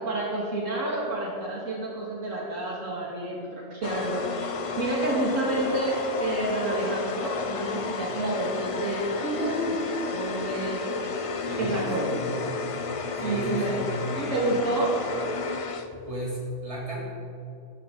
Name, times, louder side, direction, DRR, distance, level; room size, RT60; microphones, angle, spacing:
voice 1, 0.0-9.8 10.1-10.9 11.6-12.1 13.2-13.8 14.1-15.0, right 2 dB, 75° right, -4 dB, 2.5 m, -29 dB
sound 1, 3.8-16.2, left 4 dB, 40° left, 0.5 m, -32 dB
voice 2, 11.5-12.6 13.2-13.9 16.1-17.0, equal, 25° right, -6 dB, 3.6 m, -34 dB
15.0 x 14.0 x 4.1 m, 2.6 s
omnidirectional pair, 1.3 m